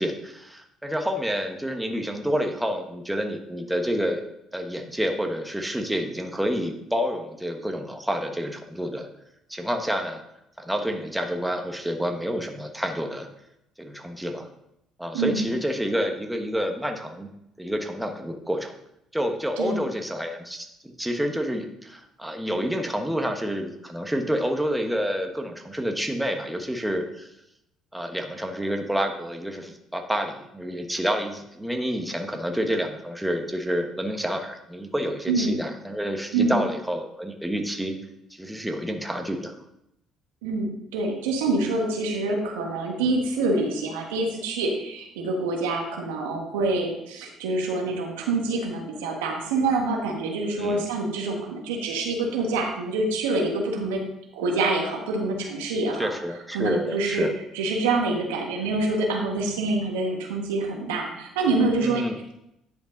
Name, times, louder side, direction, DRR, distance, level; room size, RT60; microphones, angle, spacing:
voice 1, 0.0-4.2 4.5-9.1 9.5-10.2 10.6-13.3 13.8-14.5 15.0-17.3 17.6-18.7 19.1-27.3 27.9-38.0 38.3-39.6 50.5-50.8 56.0-57.3 61.8-62.2, equal, 5° right, 4 dB, 1.2 m, -28 dB
voice 2, 40.4-54.0 54.3-56.1 56.5-57.3 57.5-62.0, right 3 dB, 90° right, 1 dB, 1.5 m, -26 dB
10.0 x 5.2 x 3.9 m, 0.82 s
hypercardioid pair, 65°, 0 cm